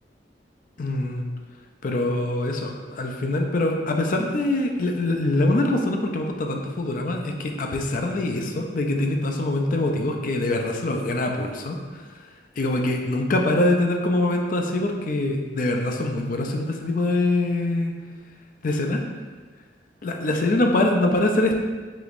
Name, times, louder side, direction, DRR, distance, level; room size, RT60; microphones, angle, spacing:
voice 1, 0.8-1.2 1.8-11.8 12.6-17.9 18.6-19.0 20.0-21.6, left 2 dB, 45° left, 3 dB, 0.4 m, -24 dB
4.9 x 3.0 x 2.5 m, 1.4 s
head